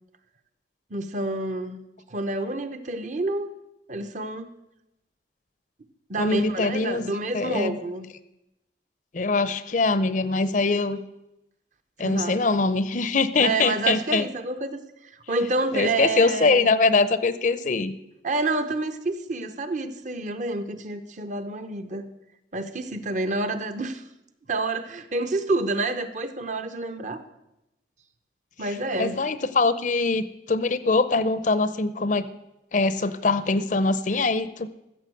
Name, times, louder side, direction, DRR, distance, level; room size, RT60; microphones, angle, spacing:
voice 1, 0.9-1.8 2.1-3.5 3.9-4.5 6.1-8.1 12.0-12.4 13.4-16.7 18.2-22.1 22.5-24.0 24.5-27.2 28.6-29.2, right 2 dB, 45° right, 10 dB, 0.9 m, -28 dB
voice 2, 6.2-7.0 7.3-7.8 9.1-11.0 12.0-14.2 15.7-17.9 29.0-32.3 32.7-34.7, left 3 dB, 45° left, 14 dB, 0.6 m, -23 dB
14.5 x 7.1 x 7.7 m, 0.90 s
head